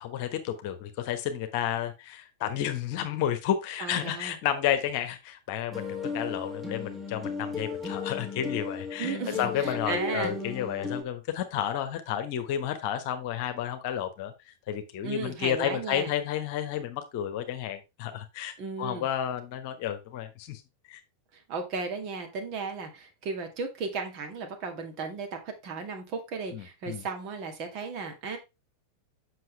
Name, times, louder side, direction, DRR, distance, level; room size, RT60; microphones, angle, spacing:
voice 1, 0.0-14.3 14.7-20.6 20.9-21.0 26.5-27.0, left 10 dB, 45° left, 8 dB, 1.2 m, -31 dB
voice 2, 3.8-4.4 9.0-10.3 15.0-16.1 18.6-19.1 21.3-28.4, right 4 dB, 40° right, 3 dB, 2.1 m, -35 dB
sound 1, 5.7-11.0, left 4 dB, 5° right, 2.1 m, -35 dB
7.7 x 6.1 x 3.3 m, 0.25 s
figure-of-eight pair, 90°, 0 cm